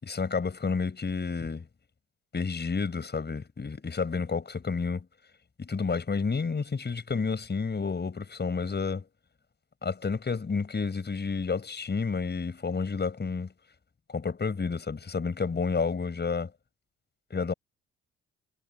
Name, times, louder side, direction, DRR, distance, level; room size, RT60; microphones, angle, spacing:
voice 1, 0.0-1.7 2.3-5.1 5.6-9.0 9.8-13.5 14.1-16.5 17.3-17.5, left 5 dB, 35° left, 7.1 m, -30 dB
figure-of-eight pair, 45°, 31 cm